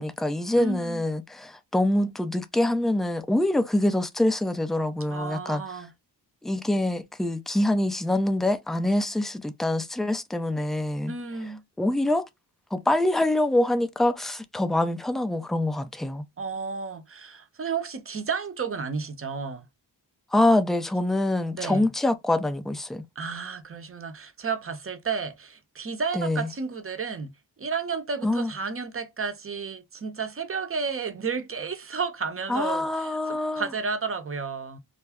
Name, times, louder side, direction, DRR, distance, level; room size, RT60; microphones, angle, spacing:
voice 1, 0.0-5.6 6.4-11.1 11.8-12.2 12.7-16.2 20.3-23.0 26.1-26.5 28.2-28.5 32.5-33.7, left 1 dB, ahead, 0.3 m, -25 dB
voice 2, 0.5-1.0 5.1-5.9 11.1-11.6 16.4-19.7 21.6-21.9 23.2-27.3 27.6-34.8, right 5 dB, 30° right, 0.7 m, -32 dB
2.3 x 2.1 x 3.4 m
cardioid pair, 55°, 44 cm